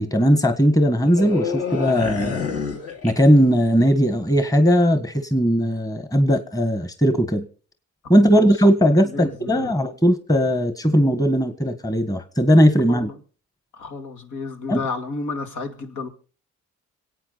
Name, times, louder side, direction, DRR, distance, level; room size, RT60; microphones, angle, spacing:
voice 1, 0.0-2.5 3.0-7.4 8.1-13.1 14.7-14.8, equal, 10° left, 1.7 m, -18 dB
sound 1, 1.0-3.7 4.0-4.2, left 6 dB, 50° left, 2.9 m, -28 dB
voice 2, 8.2-8.5 9.0-9.7 12.9-13.1 13.7-16.1, left 3 dB, 75° left, 2.6 m, -32 dB
26.5 x 8.9 x 4.1 m
cardioid pair, 90°, 30 cm